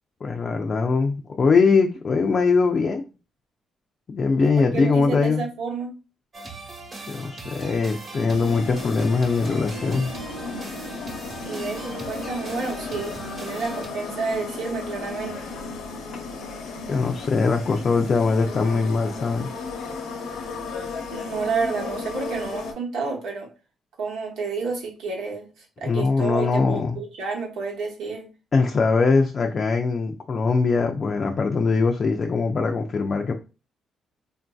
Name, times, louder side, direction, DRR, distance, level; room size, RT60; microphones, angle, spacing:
voice 1, 0.2-3.0 4.1-5.5 7.1-10.1 16.9-19.5 25.8-27.0 28.5-33.3, left 4 dB, 45° left, 0.4 m, -22 dB
voice 2, 4.4-5.9 11.4-15.5 21.1-23.5 24.0-28.3, right 4 dB, 85° right, 1.0 m, -30 dB
sound 1, 6.3-13.9, right 2 dB, 40° right, 1.1 m, -40 dB
sound 2, 8.3-22.7, left 4 dB, 90° left, 0.8 m, -34 dB
3.7 x 2.6 x 2.3 m
cardioid pair, 90°, 0 cm